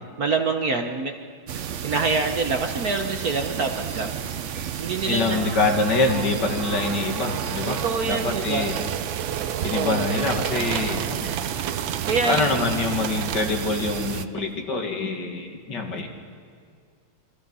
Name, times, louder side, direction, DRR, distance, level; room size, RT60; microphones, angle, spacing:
voice 1, 0.2-1.1 1.8-4.1 4.8-5.4 7.7-8.7 9.7-10.1 12.1-12.6, right 4 dB, 50° right, 5 dB, 1.4 m, -25 dB
sound 1, 1.5-14.3, right 8 dB, 90° right, 0.6 m, -32 dB
voice 2, 5.1-7.8 8.1-8.8 9.6-11.3 12.3-16.1, left 3 dB, 55° left, 2 dB, 2.6 m, -25 dB
sound 2, 6.7-13.8, right 10 dB, 70° right, 1.5 m, -32 dB
28.0 x 23.5 x 5.6 m, 2.2 s
omnidirectional pair, 2.3 m